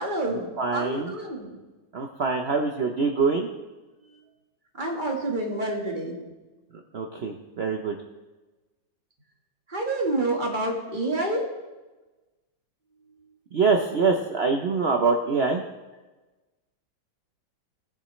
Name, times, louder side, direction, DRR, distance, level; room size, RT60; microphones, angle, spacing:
voice 1, 0.0-1.6 4.8-6.2 9.7-11.5, right 2 dB, 25° right, 0 dB, 1.5 m, -28 dB
voice 2, 0.6-1.1 1.9-3.5 6.9-8.0 13.5-15.6, right 4 dB, 85° right, 2 dB, 0.5 m, -24 dB
18.5 x 7.0 x 3.1 m, 1.2 s
omnidirectional pair, 2.0 m